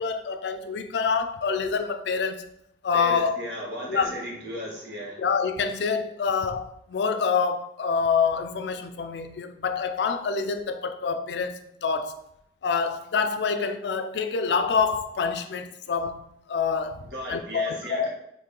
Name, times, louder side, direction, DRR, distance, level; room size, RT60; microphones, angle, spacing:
voice 1, 0.0-2.5 2.8-3.4 3.9-4.1 5.2-12.2 12.6-17.0 17.3-18.1, left 5 dB, 75° left, 0.4 m, -26 dB
voice 2, 2.9-5.2 17.1-18.1, equal, 80° right, 1.4 m, -35 dB
4.6 x 2.6 x 3.7 m
head